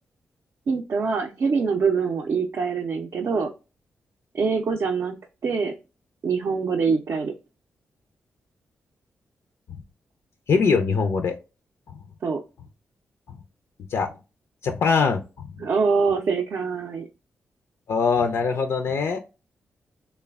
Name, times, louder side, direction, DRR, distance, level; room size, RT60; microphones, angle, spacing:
voice 1, 0.7-3.5 4.3-5.1 5.4-5.7 6.2-7.3 12.2-12.4 15.6-17.0, right 5 dB, 60° right, 1 dB, 0.4 m, -24 dB
voice 2, 10.5-11.3 13.3-13.4 13.9-14.1 14.6-15.5 17.9-19.2, left 5 dB, 70° left, 6 dB, 0.4 m, -22 dB
3.1 x 2.1 x 2.2 m, 0.30 s
supercardioid pair, 45°, 5 cm